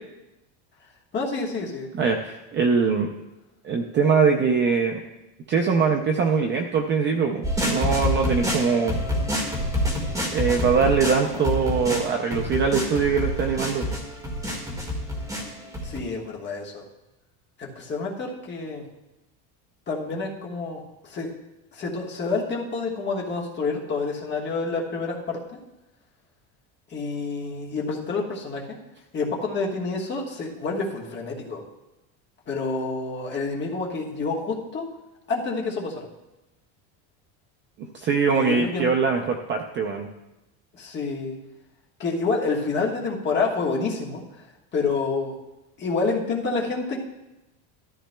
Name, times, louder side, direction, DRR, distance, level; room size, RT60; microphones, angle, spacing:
voice 1, 1.1-1.9 15.8-16.8 17.6-18.8 19.9-21.3 21.7-25.6 26.9-28.8 29.1-31.6 32.5-34.9 35.3-36.1 38.3-38.9 40.7-41.4 42.0-44.2 44.7-45.3 45.8-47.0, left 4 dB, 25° left, -1 dB, 1.3 m, -28 dB
voice 2, 1.9-3.1 3.6-5.0 5.5-9.0 10.3-13.9 37.9-40.1, right 5 dB, 25° right, 3 dB, 0.4 m, -22 dB
sound 1, 7.4-16.0, left 1 dB, 5° right, 1.6 m, -27 dB
13.5 x 13.5 x 2.2 m, 0.98 s
cardioid pair, 165°, 45 cm